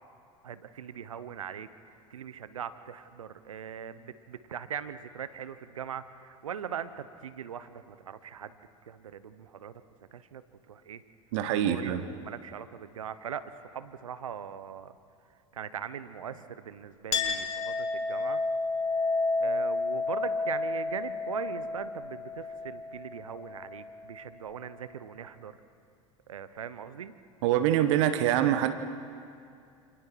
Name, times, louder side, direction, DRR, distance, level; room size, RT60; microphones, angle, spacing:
voice 1, 0.4-8.6 8.9-9.7 10.1-10.4 10.7-11.0 11.7-14.9 15.5-18.4 19.4-25.6 26.3-27.1, right 8 dB, 80° right, 13 dB, 1.0 m, -40 dB
voice 2, 11.3-12.0 27.4-28.7, right 11 dB, 60° right, 10 dB, 1.4 m, -25 dB
Chink clink, 17.1-24.2, left 3 dB, 40° left, 3.0 m, -31 dB
29.5 x 28.0 x 4.7 m, 2.4 s
figure-of-eight pair, 75°, 17 cm